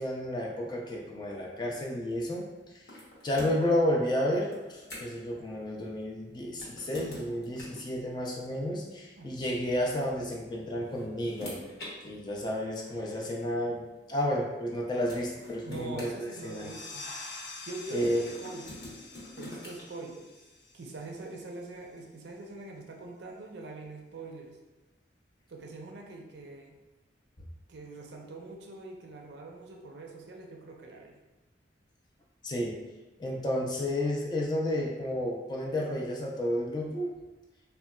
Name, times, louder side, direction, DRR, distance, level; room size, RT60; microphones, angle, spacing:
voice 1, 0.0-2.5 3.2-11.6 12.0-16.7 17.9-18.2 32.4-32.7 33.2-37.1, left 1 dB, 25° left, -1 dB, 0.4 m, -31 dB
sound 1, 2.9-3.8 4.5-5.3 6.5-7.9 9.2-9.3 10.5-11.9 12.9-13.0 14.6-14.7 15.1-16.9 18.2-19.8, left 1 dB, 60° left, 0.8 m, -45 dB
voice 2, 15.6-17.0 17.4-20.3 20.7-24.6 25.5-26.7 27.7-31.2, right 2 dB, 65° right, 1 dB, 0.4 m, -43 dB
sound 2, 16.1-21.5, left 3 dB, 85° left, 0.5 m, -46 dB
3.7 x 2.2 x 2.2 m, 1.1 s
head